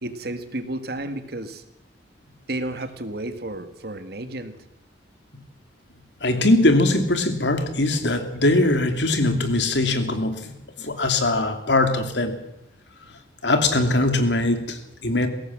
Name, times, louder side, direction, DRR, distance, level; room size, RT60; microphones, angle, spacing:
voice 1, 0.0-1.6 2.5-4.6, right 1 dB, 55° right, 9 dB, 1.8 m, -32 dB
voice 2, 6.2-10.5 10.8-12.3 13.4-15.3, left 2 dB, 70° left, 7 dB, 2.6 m, -21 dB
21.5 x 17.0 x 7.5 m, 0.83 s
head